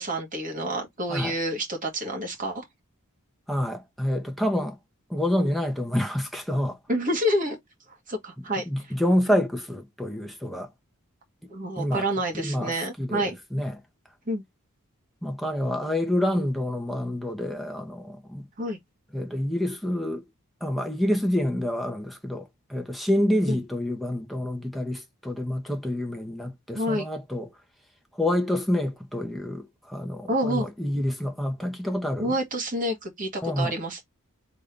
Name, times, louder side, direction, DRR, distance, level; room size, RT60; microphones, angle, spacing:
voice 1, 0.0-2.6 6.9-7.6 8.1-8.7 11.5-13.4 14.3-14.4 18.6-18.8 23.5-23.6 26.7-27.1 30.3-30.7 32.2-34.0, equal, 40° right, 2.1 m, -28 dB
voice 2, 3.5-4.8 5.1-6.8 8.7-10.7 11.8-12.0 12.3-13.8 15.2-18.5 19.1-20.2 20.6-27.5 28.2-32.3 33.4-33.7, left 1 dB, ahead, 1.0 m, -27 dB
4.0 x 3.6 x 3.4 m
head